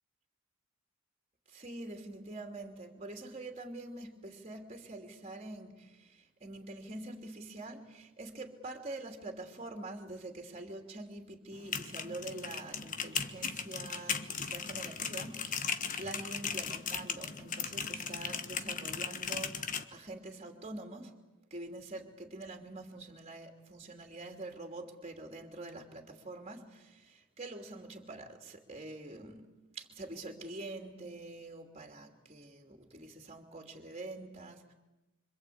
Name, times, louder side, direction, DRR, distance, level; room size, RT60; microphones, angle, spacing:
voice 1, 1.5-21.2 21.5-34.7, right 2 dB, 30° right, 3 dB, 3.0 m, -45 dB
sound 1, 11.5-19.8, left 6 dB, 40° left, 1.3 m, -37 dB
26.0 x 25.5 x 8.6 m, 1.0 s
head